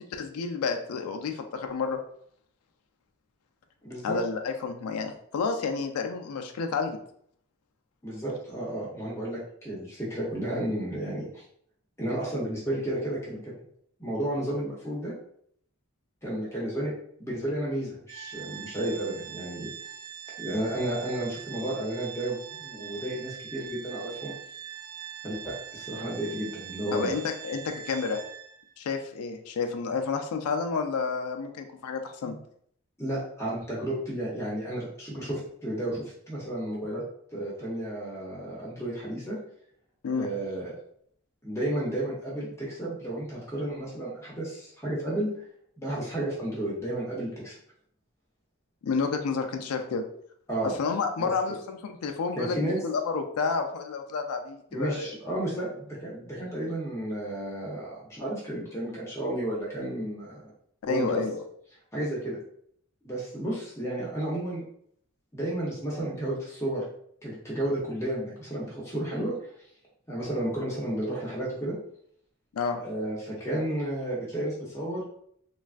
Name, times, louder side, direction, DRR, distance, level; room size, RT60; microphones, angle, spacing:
voice 1, 0.2-2.0 4.0-7.0 26.9-28.2 28.8-32.4 40.0-40.3 48.8-50.0 50.6-55.1 60.8-61.4 72.5-72.8, left 5 dB, 90° left, 5 dB, 0.4 m, -30 dB
voice 2, 3.8-4.2 8.0-11.4 12.0-13.5 14.0-15.1 16.2-16.9 17.2-19.7 20.4-24.3 25.2-27.2 33.0-37.0 37.3-39.4 40.1-40.7 41.4-45.3 45.8-47.5 50.5-50.8 51.2-51.3 52.3-52.8 54.7-60.5 60.8-61.2 61.9-62.4 63.0-64.6 65.3-66.8 67.2-69.3 70.1-71.8 72.7-75.0, right 1 dB, 15° left, -6 dB, 0.7 m, -32 dB
Organ, 18.1-28.7, right 9 dB, 85° right, 0.4 m, -43 dB
3.3 x 2.3 x 2.4 m, 0.65 s
head